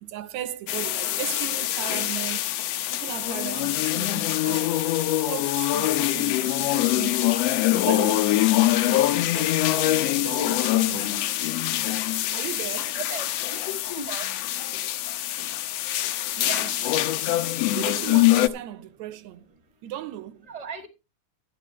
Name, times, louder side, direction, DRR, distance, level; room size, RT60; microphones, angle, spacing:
voice 1, 0.0-2.6 2.9-4.8 5.2-7.4 7.8-9.9 10.2-11.5 12.3-13.0 16.4-17.0 17.7-19.5 19.8-20.5, right 12 dB, 75° right, 2.0 m, -37 dB
sound 1, 0.7-18.5, left 15 dB, 75° left, 1.5 m, -24 dB
voice 2, 13.0-14.3 20.5-20.9, right 2 dB, 20° right, 1.1 m, -36 dB
13.0 x 11.0 x 3.1 m
omnidirectional pair, 3.5 m